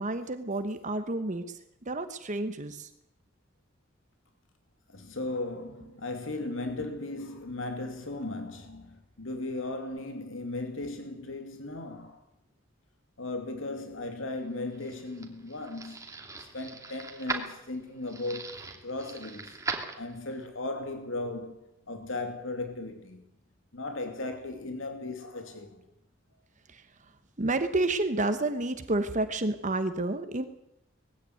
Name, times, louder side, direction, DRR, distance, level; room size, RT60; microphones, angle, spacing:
voice 1, 0.0-1.6 1.9-2.9 26.7-26.8 27.4-30.5, right 2 dB, 40° right, 1.2 m, -30 dB
voice 2, 4.9-12.2 13.2-16.0 16.4-19.6 20.0-21.6 21.9-23.2 23.7-25.8, left 2 dB, 85° left, 2.6 m, -36 dB
sound 1, 14.5-20.5, right 3 dB, 15° right, 2.7 m, -39 dB
20.0 x 16.0 x 9.4 m
head